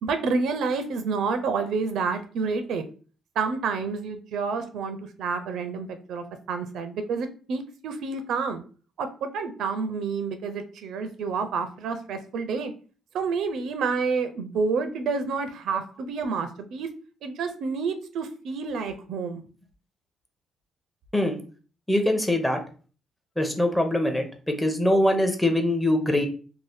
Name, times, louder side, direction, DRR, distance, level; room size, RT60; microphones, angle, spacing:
voice 1, 0.0-2.8 3.4-8.6 9.0-12.7 13.1-16.9 17.2-19.4, right 4 dB, 75° right, 8 dB, 0.4 m, -29 dB
voice 2, 21.9-22.6 23.4-26.3, left 1 dB, 5° left, 4 dB, 0.6 m, -23 dB
2.7 x 2.0 x 3.3 m, 0.39 s
cardioid pair, 90°, 0 cm